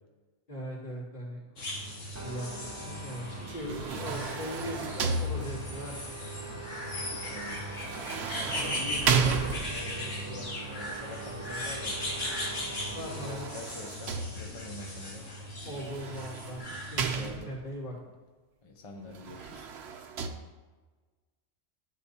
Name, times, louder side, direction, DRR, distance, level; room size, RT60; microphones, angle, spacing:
voice 1, 0.5-1.6 2.2-6.2 12.9-13.5 15.6-16.6 16.9-18.0, equal, 50° left, -7 dB, 3.1 m, -39 dB
sound 1, 1.6-17.3, left 1 dB, 85° left, 2.0 m, -38 dB
sound 2, 2.1-13.5, right 2 dB, 15° right, 0.9 m, -44 dB
sound 3, 3.5-5.9 7.8-10.0 12.9-14.8 15.8-17.8 19.1-20.3, right 5 dB, 65° right, 1.0 m, -33 dB
voice 2, 7.2-7.6 8.6-12.0 12.8-15.2 16.8-17.5 18.6-19.7, left 2 dB, 30° left, 2 dB, 0.7 m, -45 dB
11.5 x 8.8 x 2.9 m, 1.3 s
omnidirectional pair, 1.2 m